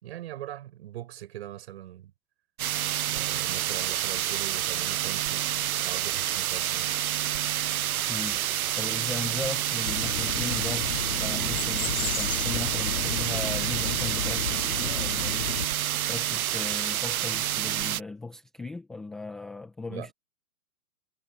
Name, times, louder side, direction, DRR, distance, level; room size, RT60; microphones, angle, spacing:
voice 1, 0.0-2.1 3.1-5.5 5.8-6.9 19.9-20.1, right 13 dB, 45° right, 4.8 m, -41 dB
sound 1, 2.6-18.0, right 12 dB, 75° right, 0.6 m, -28 dB
voice 2, 8.1-8.4 8.8-15.5 16.1-20.1, left 3 dB, ahead, 0.5 m, -37 dB
sound 2, 9.8-15.7, left 7 dB, 80° left, 1.8 m, -33 dB
hypercardioid pair, 150°, 44 cm